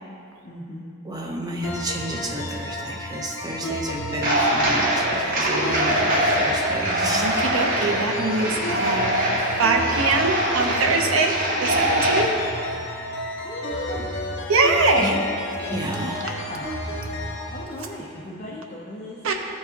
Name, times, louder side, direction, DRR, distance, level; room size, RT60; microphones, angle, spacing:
voice 1, 0.4-0.8 13.4-14.1 16.0-16.7 17.5-19.3, left 1 dB, 35° left, -5 dB, 0.6 m, -36 dB
voice 2, 1.0-7.5 15.0-15.2 15.6-16.3, right 1 dB, 20° right, 1 dB, 0.5 m, -31 dB
sound 1, 1.6-17.6, left 1 dB, 70° left, 1.1 m, -32 dB
sound 2, 4.2-12.2, right 1 dB, 45° right, 0.9 m, -23 dB
voice 3, 7.2-9.1 9.6-11.3 11.6-12.3 14.5-15.2 19.2-19.3, right 3 dB, 85° right, 3 dB, 0.7 m, -22 dB
12.5 x 4.7 x 2.8 m, 2.6 s
head